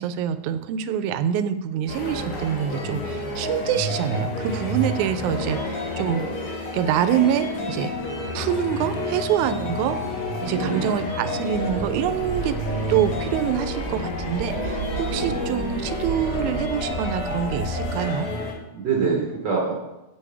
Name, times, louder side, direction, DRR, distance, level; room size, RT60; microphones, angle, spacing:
voice 1, 0.0-7.9 8.3-10.0 10.4-12.6 12.9-18.3, right 9 dB, 80° right, 11 dB, 1.9 m, -25 dB
sound 1, 1.9-18.5, equal, 70° left, 3.1 m, -31 dB
sound 2, 3.4-18.2, left 3 dB, 85° left, 3.0 m, -34 dB
voice 2, 10.5-11.0 15.1-15.4 18.7-19.7, right 5 dB, 60° right, -1 dB, 1.2 m, -25 dB
sound 3, 11.5-17.9, right 4 dB, 30° right, 1.6 m, -34 dB
9.7 x 8.5 x 3.4 m, 0.97 s
omnidirectional pair, 3.5 m